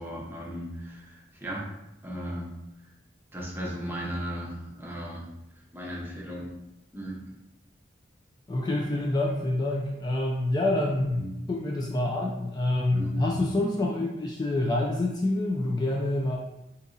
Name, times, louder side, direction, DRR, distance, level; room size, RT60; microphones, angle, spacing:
voice 1, 0.0-1.7 2.0-2.5 3.3-5.3 5.7-6.5 6.9-7.2 11.1-11.4 12.9-13.3, equal, 10° right, -3 dB, 0.7 m, -36 dB
voice 2, 8.5-16.4, left 2 dB, 25° left, -2 dB, 0.3 m, -27 dB
2.9 x 2.6 x 3.7 m, 0.88 s
head